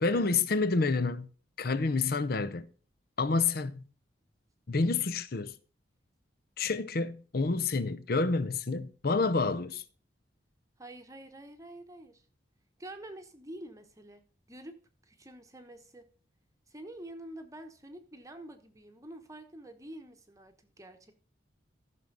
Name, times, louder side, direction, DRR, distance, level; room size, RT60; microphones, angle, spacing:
voice 1, 0.0-1.3 1.6-2.6 3.2-3.9 4.7-5.5 6.6-9.8, left 4 dB, 55° left, 0.7 m, -28 dB
voice 2, 10.8-12.3 12.8-14.8 15.0-16.1 16.7-21.1, right 1 dB, 15° right, 1.0 m, -47 dB
14.0 x 6.3 x 3.9 m
head